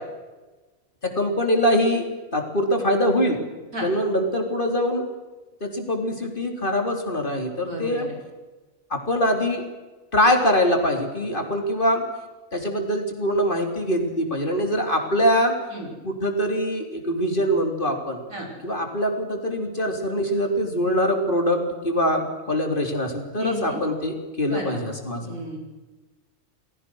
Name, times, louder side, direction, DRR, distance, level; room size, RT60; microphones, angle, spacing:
voice 1, 1.2-2.1 2.3-3.4 3.8-5.1 5.6-8.1 8.9-9.6 10.1-12.0 12.5-15.6 16.0-18.2 18.6-25.4, equal, 40° left, 3 dB, 3.7 m, -23 dB
voice 2, 7.6-8.2 15.7-15.9 18.3-18.5 23.4-23.8 24.5-24.9 25.2-25.6, equal, 85° right, 0 dB, 6.3 m, -33 dB
29.5 x 20.0 x 6.4 m, 1.2 s
omnidirectional pair, 1.4 m